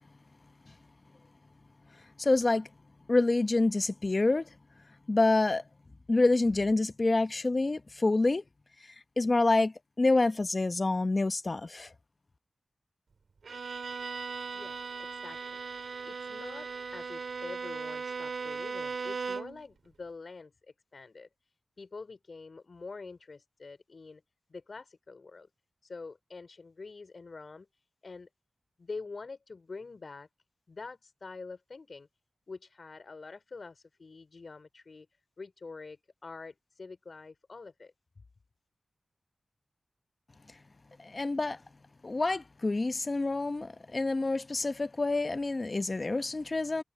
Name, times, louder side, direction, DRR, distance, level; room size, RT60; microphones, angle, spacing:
voice 1, 2.2-2.7 3.1-4.5 5.1-5.6 6.1-8.4 9.2-11.9 41.0-41.6 42.0-46.8, left 2 dB, 40° left, 0.9 m, -27 dB
Bowed string instrument, 13.4-19.7, right 5 dB, 75° right, 2.3 m, -38 dB
voice 2, 14.5-14.8 15.1-20.5 20.9-21.3 21.8-24.2 24.5-25.5 25.8-28.3 28.8-30.3 30.7-32.1 32.5-35.1 35.4-37.9, left 4 dB, 55° left, 4.4 m, -46 dB
wide cardioid pair, 85°, 0 cm